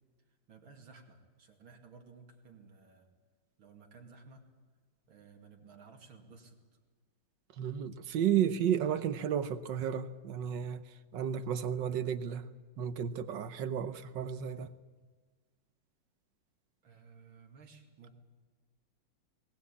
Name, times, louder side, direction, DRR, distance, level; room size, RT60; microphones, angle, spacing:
voice 1, 0.5-3.1 3.6-4.5 5.1-6.6 16.8-18.2, right 4 dB, 85° right, 3.3 m, -56 dB
voice 2, 7.6-10.8 11.1-12.5 12.8-14.7, right 9 dB, 70° right, 1.5 m, -32 dB
21.0 x 19.5 x 8.5 m
omnidirectional pair, 2.2 m